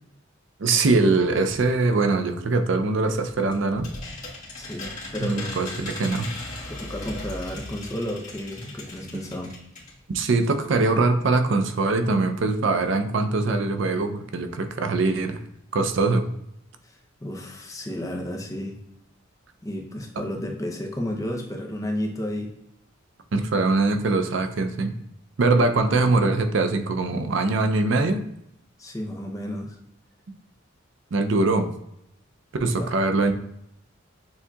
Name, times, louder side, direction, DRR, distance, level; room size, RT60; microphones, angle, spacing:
voice 1, 0.6-3.9 5.2-6.3 10.1-15.4 15.7-16.2 20.2-20.3 23.3-24.9 25.4-28.2 31.1-31.7 32.6-33.3, right 3 dB, 65° right, 7 dB, 0.5 m, -22 dB
sound 1, 3.1-10.0 10.3-10.4 10.6-10.7, left 2 dB, 40° left, 1.3 m, -38 dB
voice 2, 4.6-5.6 6.7-9.5 17.2-18.8 19.6-22.5 28.8-29.8 32.6-32.9, left 1 dB, 15° left, 2 dB, 0.6 m, -32 dB
7.0 x 2.7 x 2.3 m, 0.78 s
head